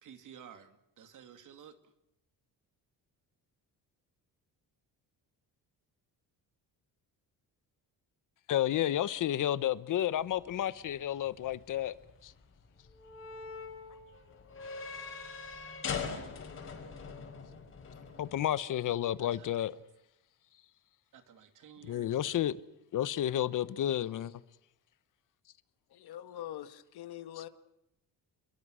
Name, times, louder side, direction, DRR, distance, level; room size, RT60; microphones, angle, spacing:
voice 1, 0.0-1.9 19.2-19.6 21.1-22.4, right 8 dB, 55° right, 2.7 m, -54 dB
voice 2, 8.5-12.0 12.2-12.3 18.2-19.7 21.9-22.6 22.9-24.3, left 11 dB, 55° left, 1.0 m, -31 dB
sound 1, 10.2-18.5, left 5 dB, 35° left, 5.5 m, -43 dB
voice 3, 25.9-27.5, left 12 dB, 85° left, 2.2 m, -44 dB
28.5 x 22.5 x 6.4 m
cardioid pair, 170°, 37 cm